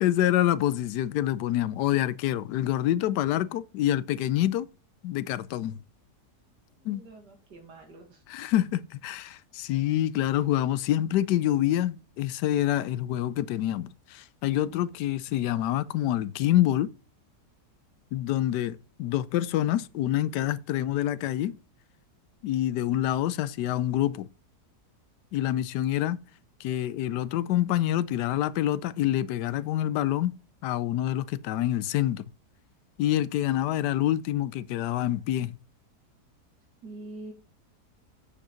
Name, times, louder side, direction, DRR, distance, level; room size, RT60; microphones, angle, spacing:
voice 1, 0.0-4.7 5.0-5.8 6.8-7.0 8.3-16.9 18.1-21.6 22.4-24.3 25.3-26.2 26.6-30.3 30.6-32.2 33.0-35.5, left 13 dB, 85° left, 1.2 m, -26 dB
voice 2, 6.8-8.2 36.8-37.3, right 2 dB, 85° right, 2.7 m, -45 dB
8.6 x 5.1 x 5.7 m
omnidirectional pair, 1.8 m